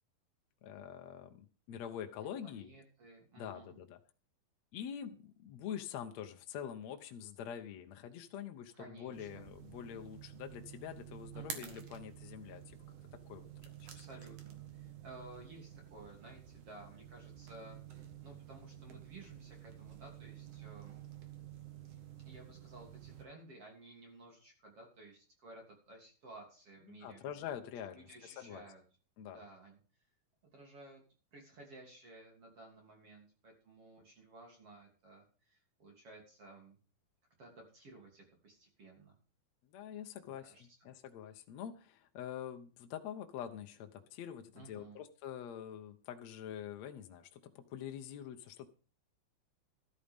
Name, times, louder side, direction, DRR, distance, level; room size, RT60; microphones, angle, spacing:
voice 1, 0.6-2.7 3.4-4.0 4.7-12.8 13.3-13.5 13.8-14.0 26.9-28.6 29.2-29.4 39.7-48.7, left 9 dB, 65° left, 6 dB, 1.8 m, -45 dB
voice 2, 2.2-3.8 8.7-9.4 11.3-11.8 13.9-21.0 22.3-27.2 27.9-28.8 29.2-29.8 30.4-31.0 31.3-36.8 37.4-39.2 40.2-40.7 44.5-45.0, right 2 dB, 40° right, 0 dB, 3.8 m, -55 dB
sound 1, 9.1-23.3, right 10 dB, 60° right, 3.0 m, -51 dB
13.5 x 13.0 x 3.7 m, 0.38 s
omnidirectional pair, 4.3 m